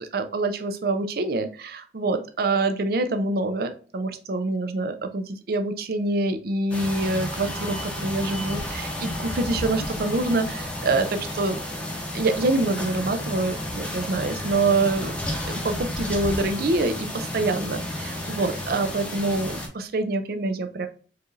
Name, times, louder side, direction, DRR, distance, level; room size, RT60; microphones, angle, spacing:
voice 1, 0.0-11.6 12.1-15.2 15.4-20.9, right 2 dB, 55° right, 8 dB, 0.5 m, -26 dB
sound 1, 6.7-19.7, left 1 dB, 5° left, 0.8 m, -32 dB
4.7 x 3.1 x 2.5 m, 0.40 s
head